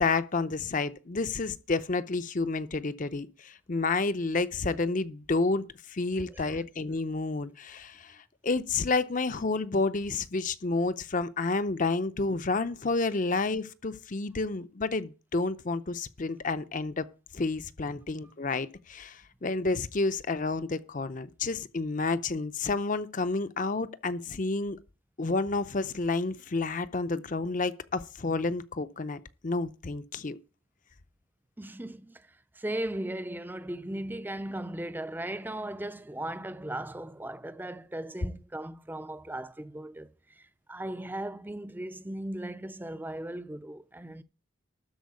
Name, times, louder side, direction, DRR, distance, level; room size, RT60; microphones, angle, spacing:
voice 1, 0.0-17.1 17.3-24.8 25.2-30.4, left 3 dB, 40° left, 0.6 m, -30 dB
voice 2, 6.3-6.6 17.9-18.3 31.6-44.2, right 1 dB, 10° right, 0.5 m, -38 dB
13.0 x 4.6 x 8.3 m
head